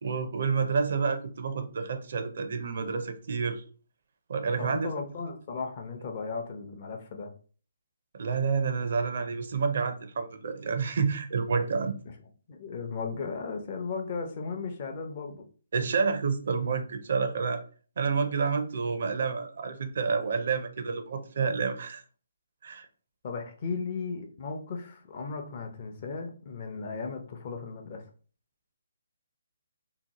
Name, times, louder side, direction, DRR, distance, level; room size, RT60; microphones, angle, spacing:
voice 1, 0.0-3.6 4.3-4.9 8.1-12.0 15.7-17.6 18.0-22.0 22.6-22.9, right 5 dB, 60° right, 8 dB, 0.5 m, -29 dB
voice 2, 4.6-7.3 12.5-15.4 23.2-28.0, left 4 dB, 40° left, 4 dB, 0.6 m, -36 dB
2.8 x 2.0 x 2.9 m, 0.40 s
figure-of-eight pair, 145°, 0 cm